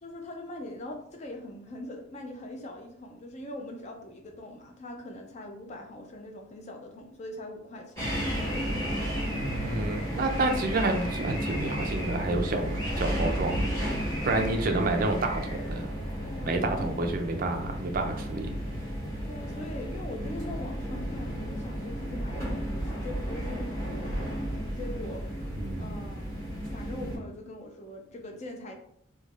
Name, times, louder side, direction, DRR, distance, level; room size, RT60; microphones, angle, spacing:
voice 1, 0.0-8.0 14.2-14.8 16.2-17.0 19.3-25.2 25.8-28.7, left 1 dB, 35° left, 2 dB, 0.4 m, -42 dB
sound 1, 8.0-27.2, equal, 15° left, 1.1 m, -33 dB
voice 2, 9.4-13.7 14.2-15.9 16.4-18.5 25.5-25.8, right 2 dB, 45° right, 5 dB, 0.3 m, -29 dB
3.1 x 2.2 x 2.4 m, 0.71 s
head